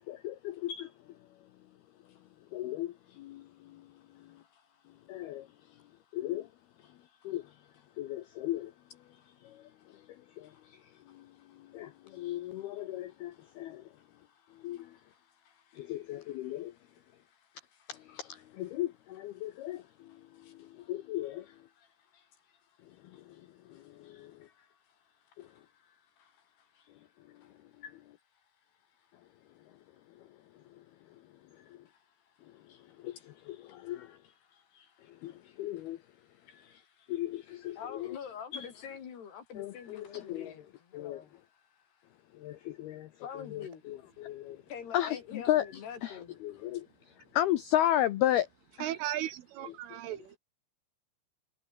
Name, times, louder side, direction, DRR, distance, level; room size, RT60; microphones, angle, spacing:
voice 1, 0.1-0.9 2.5-3.8 5.1-5.5 6.1-6.5 7.2-7.4 8.0-8.7 9.5-9.6 10.4-10.5 11.1-11.2 11.7-13.8 14.6-14.9 15.8-16.7 17.9-19.8 20.5-21.5 24.0-24.3 33.0-33.2 33.5-34.1 35.2-35.3 35.6-36.0 37.1-38.2 38.5-38.7 39.6-40.5 40.9-41.2 42.4-43.1 43.4-44.6 44.9-45.6 46.0-46.2 46.4-46.9 47.3-48.5 48.8-48.9, left 13 dB, 80° left, 2.3 m, -34 dB
voice 2, 2.7-6.2 6.8-8.5 9.0-17.9 18.7-18.8 19.4-28.0 29.0-29.1 31.5-42.2 43.2-46.8, left 7 dB, 55° left, 5.1 m, -52 dB
voice 3, 48.8-50.4, right 13 dB, 80° right, 4.0 m, -36 dB
omnidirectional pair, 5.8 m